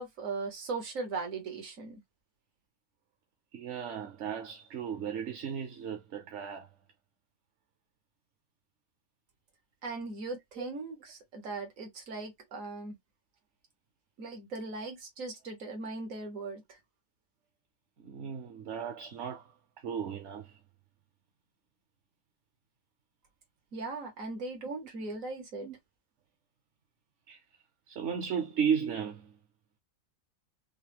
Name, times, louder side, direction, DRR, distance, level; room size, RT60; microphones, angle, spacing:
voice 1, 0.0-2.0 9.8-12.9 14.2-16.8 23.7-25.7, right 3 dB, 80° right, 1.7 m, -39 dB
voice 2, 3.5-6.7 10.6-10.7 18.0-19.5 19.8-20.6 25.6-25.7 27.3-27.4 27.9-29.3, right 7 dB, 65° right, 1.0 m, -35 dB
5.4 x 2.1 x 3.4 m
omnidirectional pair, 1.4 m